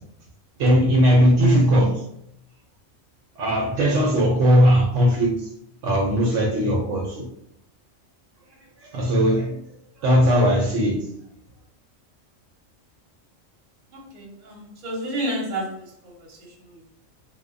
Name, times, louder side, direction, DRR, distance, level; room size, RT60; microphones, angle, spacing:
voice 1, 0.6-2.0 3.4-5.5 5.8-7.3 8.8-9.6 10.0-11.1, equal, 70° right, 0 dB, 0.9 m, -19 dB
voice 2, 13.9-16.9, right 1 dB, 45° right, -2 dB, 0.8 m, -32 dB
2.7 x 2.1 x 2.4 m, 0.74 s
omnidirectional pair, 1.3 m